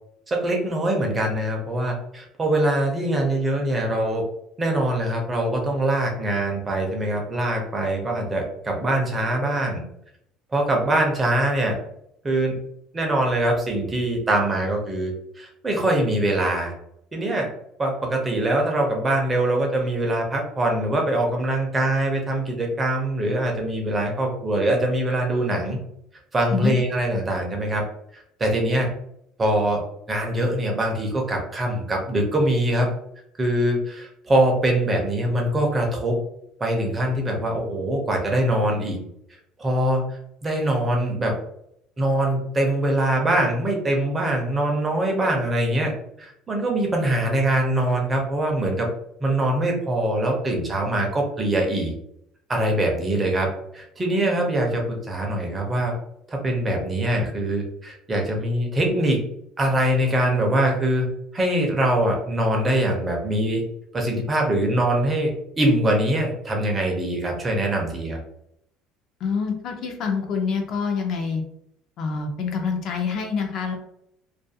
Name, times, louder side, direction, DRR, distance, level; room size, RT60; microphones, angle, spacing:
voice 1, 0.3-4.2 4.6-9.8 10.5-11.8 12.2-12.6 12.9-15.1 15.4-16.7 17.1-17.5 17.8-25.8 26.3-27.8 28.1-28.9 29.4-29.8 30.1-32.9 33.4-36.2 36.6-39.0 39.6-41.4 42.0-45.9 46.2-48.9 49.2-51.9 52.5-55.9 56.3-59.2 59.6-61.1 61.3-63.6 63.9-68.2, right 1 dB, 15° right, 0 dB, 0.5 m, -23 dB
voice 2, 69.2-71.4 72.0-73.7, left 5 dB, 45° left, 3 dB, 0.4 m, -26 dB
2.3 x 2.2 x 2.6 m, 0.74 s
cardioid pair, 160°, 0 cm